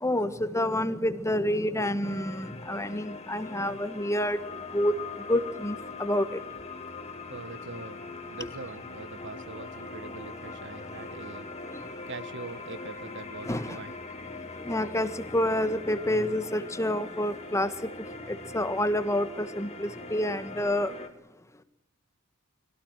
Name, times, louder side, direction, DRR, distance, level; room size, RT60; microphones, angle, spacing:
voice 1, 0.0-4.4 4.7-4.9 5.3-6.4 11.7-11.8 13.5-13.8 14.6-17.7 18.3-20.9, left 1 dB, 15° left, 11 dB, 1.4 m, -28 dB
sound 1, 2.0-21.1, left 3 dB, 30° left, 2.4 m, -41 dB
voice 2, 7.3-11.5 12.1-13.9, right 3 dB, 60° right, 13 dB, 1.5 m, -43 dB
23.5 x 17.5 x 8.9 m, 0.84 s
head